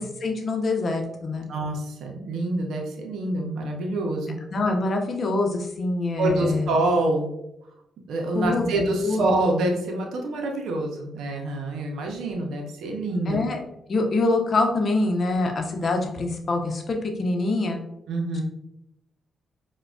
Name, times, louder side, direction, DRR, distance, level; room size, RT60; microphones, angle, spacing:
voice 1, 0.0-1.5 4.5-6.7 8.3-8.7 9.0-9.2 13.3-13.6 13.9-17.8, left 2 dB, 55° left, 3 dB, 0.7 m, -25 dB
voice 2, 1.5-4.4 6.2-7.3 8.1-13.4 18.1-18.4, right 2 dB, 80° right, 1 dB, 0.6 m, -26 dB
4.7 x 2.2 x 2.3 m, 0.84 s
supercardioid pair, 55°, 0 cm